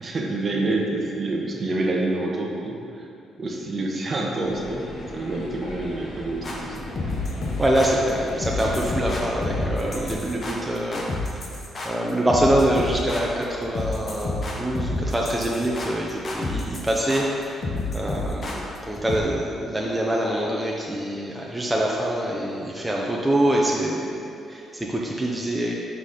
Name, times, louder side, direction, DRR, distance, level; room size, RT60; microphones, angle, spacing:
voice 1, 0.0-3.1 3.4-4.9 5.1-6.8, right 2 dB, 40° right, 0 dB, 0.9 m, -27 dB
sound 1, 4.4-10.2, left 1 dB, 70° left, 1.3 m, -35 dB
sound 2, 6.4-19.2, left 2 dB, 40° left, 0.9 m, -30 dB
voice 2, 7.5-11.1 11.8-17.7 17.9-25.7, right 1 dB, 10° right, -3 dB, 0.6 m, -25 dB
5.8 x 4.1 x 4.9 m, 2.6 s
cardioid pair, 90°, 0 cm